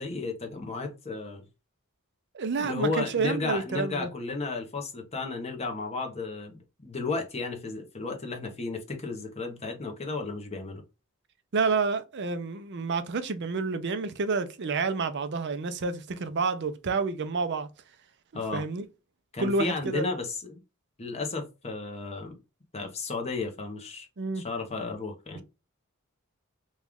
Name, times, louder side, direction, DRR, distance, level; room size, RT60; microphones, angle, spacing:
voice 1, 0.0-1.5 2.6-10.8 18.3-18.6 19.3-20.6 21.0-22.4 22.7-24.1 24.3-25.4, left 3 dB, 30° left, 0.9 m, -33 dB
voice 2, 2.3-4.1 11.5-17.7 18.5-18.8 19.4-20.0 24.2-24.4 25.3-25.4, right 4 dB, 55° right, 0.5 m, -29 dB
3.1 x 2.4 x 3.5 m
head